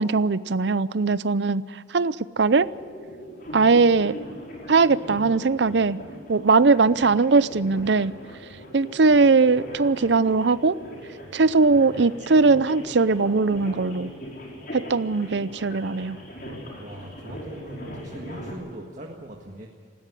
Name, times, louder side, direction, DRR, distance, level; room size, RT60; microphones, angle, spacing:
voice 1, 0.0-1.6 1.9-2.7 3.5-4.1 4.7-6.0 6.3-8.1 8.7-10.8 11.3-14.1 14.7-16.2, right 4 dB, 65° right, 17 dB, 0.6 m, -20 dB
sound 1, 2.4-18.5, equal, 50° left, 5.7 m, -40 dB
voice 2, 16.8-19.7, right 1 dB, 40° right, 1 dB, 1.7 m, -40 dB
19.5 x 16.0 x 9.9 m, 2.1 s
head